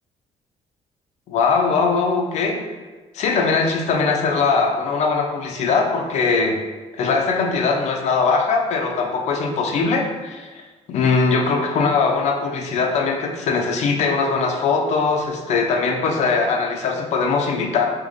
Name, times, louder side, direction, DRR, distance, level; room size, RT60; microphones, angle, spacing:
voice 1, 1.3-2.6 3.1-6.6 7.0-10.6 10.9-17.8, left 4 dB, 65° left, 2 dB, 0.6 m, -21 dB
3.5 x 3.0 x 3.6 m, 1.3 s
cardioid pair, 145°, 13 cm